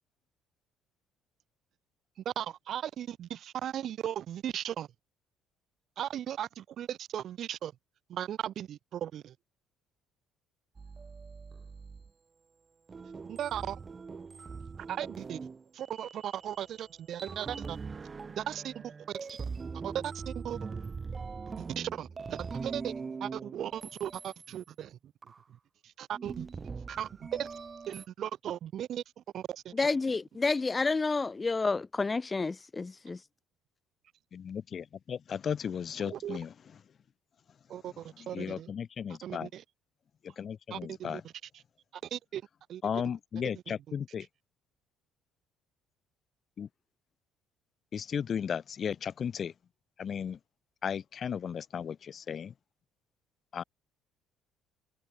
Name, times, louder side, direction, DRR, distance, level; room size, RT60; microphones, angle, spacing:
voice 1, 2.2-4.9 6.0-7.7 8.1-9.3 13.3-13.8 14.9-15.4 15.7-17.8 18.4-19.4 19.8-20.6 21.6-22.9 23.2-25.0 25.8-26.5 27.0-27.5 27.9-29.0 29.3-29.9 36.1-36.4 37.7-38.7 39.2-39.6 40.7-41.2 42.0-42.4 42.7-43.0 43.7-43.8, right 10 dB, 50° right, 0.9 m, -37 dB
sound 1, 10.7-12.1 12.9-16.9 17.2-24.6 25.2-25.4 26.1-28.1, right 5 dB, 25° right, 4.0 m, -42 dB
voice 2, 29.7-33.2, left 3 dB, 15° left, 1.8 m, -29 dB
voice 3, 34.3-36.5 37.8-39.5 40.2-41.2 42.8-44.3 46.6-46.7 47.9-49.5 50.0-50.4 50.8-52.5 53.5-53.6, left 7 dB, 35° left, 2.6 m, -35 dB
cardioid pair, 145°, 0 cm